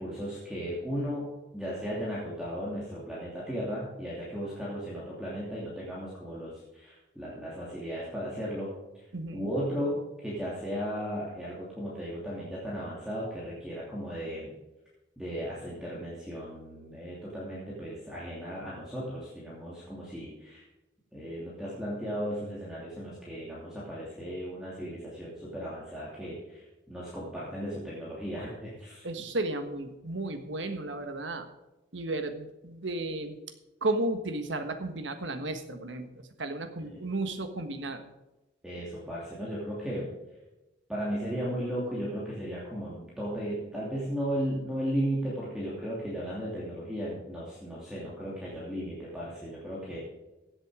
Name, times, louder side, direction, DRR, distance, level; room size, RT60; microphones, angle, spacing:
voice 1, 0.0-9.1 9.3-14.5 15.2-20.6 21.1-29.1 36.8-37.0 38.6-40.1 40.9-50.0, equal, 5° right, -7 dB, 2.8 m, -35 dB
voice 2, 9.1-9.5 29.0-31.5 31.9-33.4 33.8-38.0, right 2 dB, 80° right, 8 dB, 1.5 m, -33 dB
15.5 x 8.0 x 4.9 m, 1.0 s
head